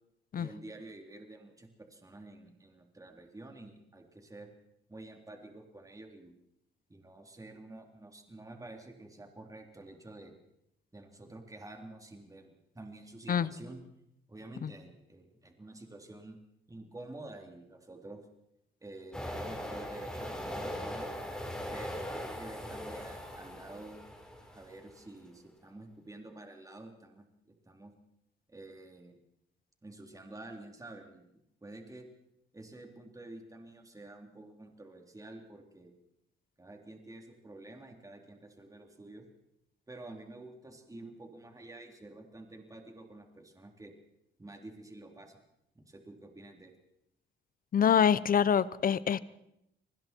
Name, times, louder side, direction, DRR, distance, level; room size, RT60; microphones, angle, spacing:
voice 1, 0.3-4.5 4.9-6.3 6.9-10.3 10.9-13.8 14.3-16.4 16.7-18.2 18.8-21.1 21.7-24.0 24.5-27.3 27.7-27.9 28.5-29.2 29.8-31.3 31.6-32.1 32.5-35.9 36.6-39.3 39.9-43.9 44.4-45.4 45.8-46.7, right 2 dB, 15° right, 3 dB, 3.6 m, -49 dB
sound 1, 19.1-24.9, equal, 5° left, 4.3 m, -40 dB
voice 2, 47.7-49.2, left 8 dB, 45° left, 18 dB, 0.8 m, -25 dB
29.5 x 20.5 x 4.6 m, 0.81 s
cardioid pair, 90°, 20 cm